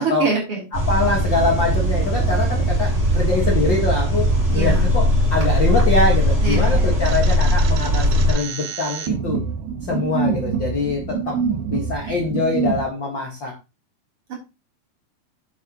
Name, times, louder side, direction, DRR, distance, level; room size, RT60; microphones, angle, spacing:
voice 1, 0.0-0.6 4.5-4.8 6.4-6.9, right 5 dB, 35° right, -3 dB, 3.8 m, -24 dB
voice 2, 0.7-9.4 9.8-11.4 11.7-13.5, left 3 dB, 90° left, -1 dB, 1.0 m, -24 dB
sound 1, 0.7-8.3, equal, 20° right, 3.4 m, -19 dB
sound 2, 7.1-12.8, right 6 dB, 75° right, 2.4 m, -26 dB
9.1 x 7.7 x 3.0 m, 0.27 s
omnidirectional pair, 4.9 m